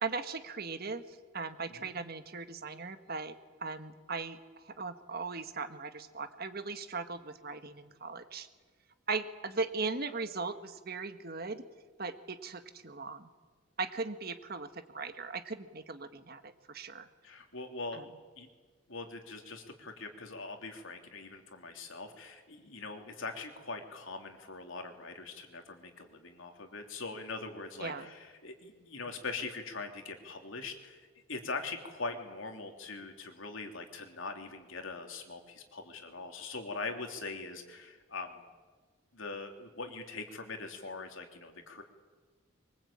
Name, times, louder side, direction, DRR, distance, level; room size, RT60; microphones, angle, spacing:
voice 1, 0.0-3.3 3.6-8.5 9.1-11.6 12.0-13.3 13.8-17.1 17.9-18.0 27.8-28.1, right 4 dB, 45° right, 9 dB, 1.5 m, -38 dB
voice 2, 17.2-18.0 18.4-18.5 18.9-31.0 31.3-38.4 39.1-41.8, left 3 dB, 70° left, 4 dB, 3.2 m, -42 dB
23.5 x 23.0 x 8.8 m, 1.4 s
head